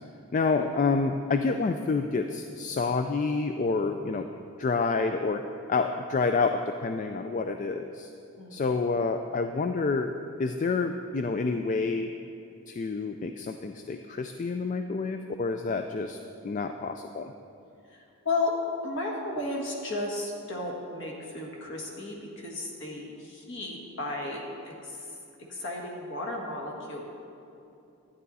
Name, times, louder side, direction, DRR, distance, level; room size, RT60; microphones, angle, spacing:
voice 1, 0.3-4.3 4.6-5.4 5.7-8.1 8.5-10.1 10.4-12.1 12.7-17.3, left 4 dB, 35° left, 7 dB, 0.3 m, -28 dB
voice 2, 18.8-25.0 25.5-27.0, left 2 dB, 55° left, -1 dB, 1.8 m, -34 dB
11.5 x 9.8 x 4.1 m, 2.7 s
head